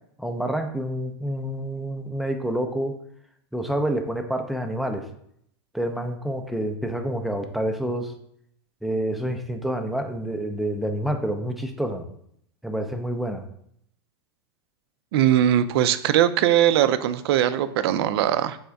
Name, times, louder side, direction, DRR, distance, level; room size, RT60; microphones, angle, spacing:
voice 1, 0.2-2.9 3.5-5.0 5.7-8.1 8.8-12.0 12.6-13.4, right 1 dB, ahead, 5 dB, 0.4 m, -28 dB
voice 2, 15.1-18.6, right 11 dB, 70° right, 12 dB, 0.4 m, -20 dB
4.1 x 3.5 x 3.4 m, 0.70 s
hypercardioid pair, 125°, 14 cm